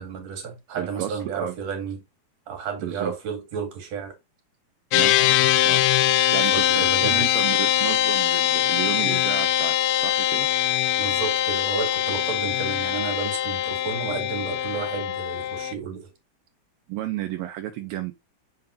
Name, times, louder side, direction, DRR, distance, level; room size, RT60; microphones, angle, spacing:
voice 1, 0.0-2.0 2.5-4.2 6.5-7.4 11.0-16.1, right 6 dB, 50° right, 2.8 m, -32 dB
voice 2, 0.8-1.6 2.8-3.1 4.9-5.4 5.6-5.9 6.3-10.5 16.9-18.1, right 13 dB, 80° right, 2.3 m, -32 dB
sound 1, 4.9-15.7, left 12 dB, 85° left, 2.5 m, -22 dB
7.5 x 5.8 x 2.6 m
omnidirectional pair, 4.5 m